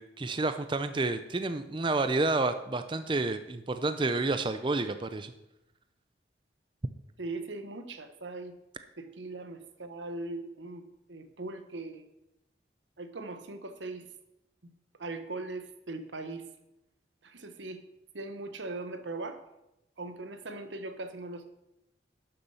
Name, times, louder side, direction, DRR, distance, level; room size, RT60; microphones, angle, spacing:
voice 1, 0.0-5.3, right 3 dB, 25° right, 9 dB, 0.5 m, -30 dB
voice 2, 7.2-8.5 9.0-12.0 13.0-14.1 15.0-16.5 17.2-17.8 18.1-19.4 20.0-21.5, right 2 dB, 90° right, 9 dB, 1.1 m, -40 dB
12.0 x 6.9 x 5.7 m, 0.88 s
head